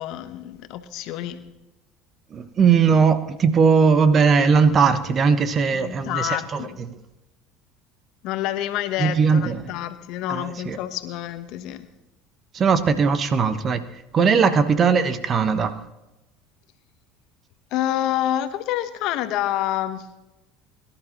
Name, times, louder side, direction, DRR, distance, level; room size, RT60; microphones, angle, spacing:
voice 1, 0.0-1.4 5.7-6.8 8.2-11.9 17.7-20.1, left 12 dB, 65° left, 10 dB, 1.1 m, -28 dB
voice 2, 2.3-7.0 9.0-9.6 10.3-10.8 12.5-13.8 14.1-15.8, right 5 dB, 40° right, 11 dB, 1.1 m, -19 dB
23.0 x 12.0 x 3.0 m, 0.98 s
hypercardioid pair, 75°, 0 cm